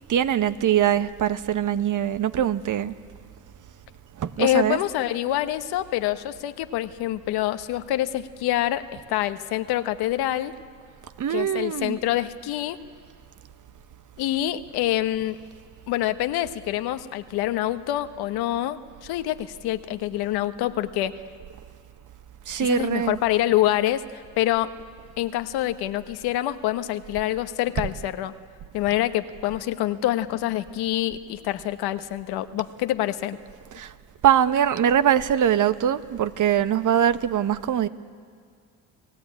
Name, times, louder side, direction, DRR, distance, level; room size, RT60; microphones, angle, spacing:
voice 1, 0.1-2.9 4.2-4.8 11.2-12.0 22.5-23.2 33.7-33.9 34.2-37.9, right 10 dB, 55° right, 1.1 m, -22 dB
voice 2, 4.4-8.8 9.1-10.5 11.3-12.8 14.2-15.4 15.9-21.1 22.6-24.7 25.2-28.3 28.7-33.4, left 14 dB, 85° left, 1.2 m, -26 dB
29.5 x 18.0 x 8.8 m
supercardioid pair, 70°, 37 cm